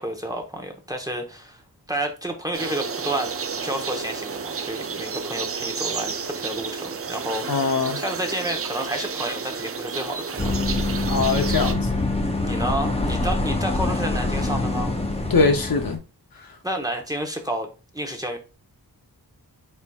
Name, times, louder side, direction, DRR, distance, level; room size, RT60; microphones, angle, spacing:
voice 1, 0.0-1.6 1.9-3.3 3.6-10.6 12.4-15.0 16.6-18.4, right 1 dB, 10° right, 0.8 m, -30 dB
sound 1, 2.5-11.7, right 5 dB, 40° right, 0.4 m, -31 dB
voice 2, 7.5-8.0 11.0-11.9 15.3-16.0, left 4 dB, 60° left, 0.7 m, -22 dB
sound 2, 10.4-16.0, left 2 dB, 15° left, 0.7 m, -25 dB
4.3 x 3.9 x 2.3 m
wide cardioid pair, 85°, 39 cm